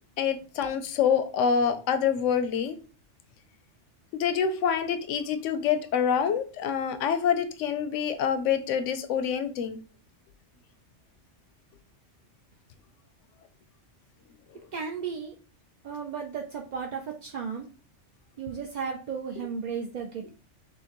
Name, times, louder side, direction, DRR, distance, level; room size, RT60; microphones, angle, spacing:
voice 1, 0.2-2.8 4.1-9.8, left 7 dB, 90° left, 10 dB, 0.9 m, -26 dB
voice 2, 14.7-15.3 15.8-17.7 18.4-20.3, right 6 dB, 55° right, 1 dB, 0.5 m, -34 dB
6.2 x 2.3 x 2.9 m, 0.36 s
omnidirectional pair, 1.2 m